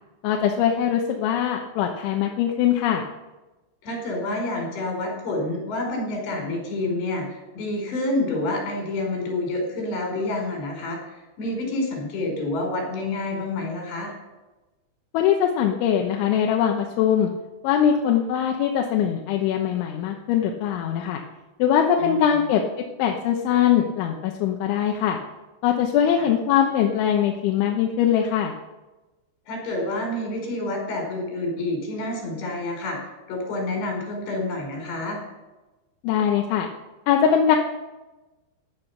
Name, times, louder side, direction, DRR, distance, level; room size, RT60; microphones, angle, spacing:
voice 1, 0.2-3.0 15.1-17.3 17.6-21.2 21.6-22.6 23.0-25.2 25.6-28.5 36.0-36.7 37.1-37.6, left 9 dB, 90° left, 2 dB, 3.4 m, -21 dB
voice 2, 3.8-14.1 22.0-22.4 26.2-26.3 29.5-33.0 33.3-35.2, left 2 dB, 70° left, 1 dB, 6.5 m, -28 dB
15.5 x 11.0 x 5.8 m, 1.1 s
omnidirectional pair, 5.2 m